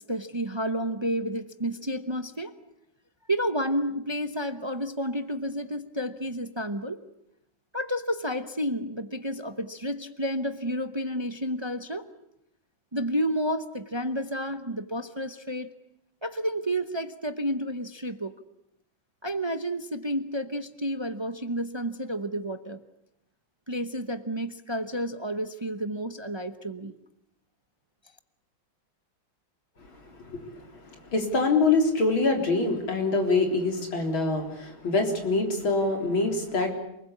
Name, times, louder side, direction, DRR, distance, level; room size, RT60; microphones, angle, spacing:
voice 1, 0.0-2.5 3.3-7.0 7.7-12.1 12.9-15.7 16.2-18.3 19.2-22.8 23.7-26.9, equal, 30° right, 10 dB, 0.4 m, -30 dB
voice 2, 30.2-30.6 31.1-36.7, left 3 dB, 80° left, 4 dB, 4.6 m, -25 dB
28.0 x 20.5 x 8.6 m, 0.82 s
omnidirectional pair, 2.2 m